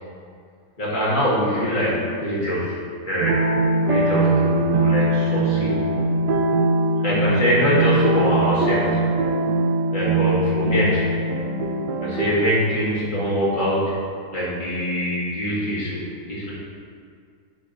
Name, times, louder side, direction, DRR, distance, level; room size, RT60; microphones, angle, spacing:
voice 1, 0.8-2.8 3.1-3.4 3.9-5.8 7.0-9.0 9.9-11.1 12.0-14.0 14.3-16.5, equal, 30° left, -8 dB, 1.9 m, -23 dB
sound 1, 3.2-12.3, right 2 dB, 90° right, 1.2 m, -21 dB
9.2 x 3.4 x 3.9 m, 2.2 s
omnidirectional pair, 1.8 m